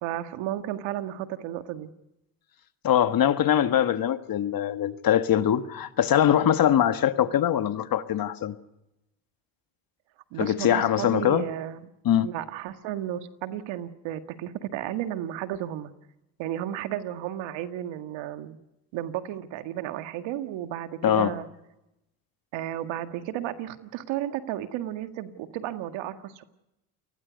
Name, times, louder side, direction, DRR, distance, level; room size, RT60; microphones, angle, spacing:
voice 1, 0.0-1.9 10.3-15.9 16.4-18.6 18.9-21.5 22.5-26.4, right 12 dB, 65° right, 1.8 m, -33 dB
voice 2, 2.8-8.6 10.4-11.4 12.1-12.3 21.0-21.3, left 10 dB, 45° left, 1.6 m, -22 dB
29.5 x 20.5 x 5.2 m
hypercardioid pair, 75°, 48 cm